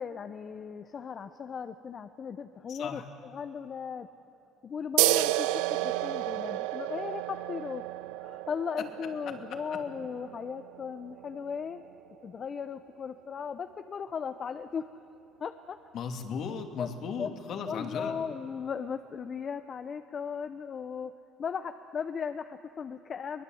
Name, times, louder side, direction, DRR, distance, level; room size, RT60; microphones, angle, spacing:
voice 1, 0.0-4.1 4.6-7.8 8.2-11.8 12.2-14.9 15.4-15.8 16.8-16.9 17.2-17.3 17.7-21.1 21.4-23.4, left 6 dB, 45° left, 9 dB, 0.9 m, -37 dB
voice 2, 2.7-3.0 15.9-18.2, left 6 dB, 60° left, 4 dB, 2.7 m, -36 dB
sound 1, 5.0-12.1, right 17 dB, 90° right, 0.5 m, -32 dB
23.0 x 20.5 x 8.0 m, 2.6 s
supercardioid pair, 85°, 0 cm